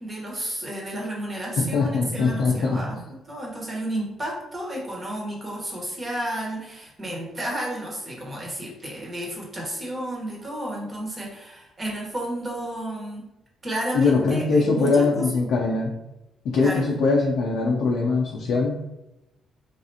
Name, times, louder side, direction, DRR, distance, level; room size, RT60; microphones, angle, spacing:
voice 1, 0.0-3.0 3.3-13.2 13.6-14.9 15.1-15.3 16.6-16.8, right 1 dB, 30° right, -3 dB, 1.2 m, -32 dB
voice 2, 1.7-3.0 13.9-15.9 16.4-18.8, left 3 dB, 80° left, -1 dB, 0.5 m, -22 dB
3.3 x 2.5 x 2.8 m, 0.92 s
cardioid pair, 90°, 0 cm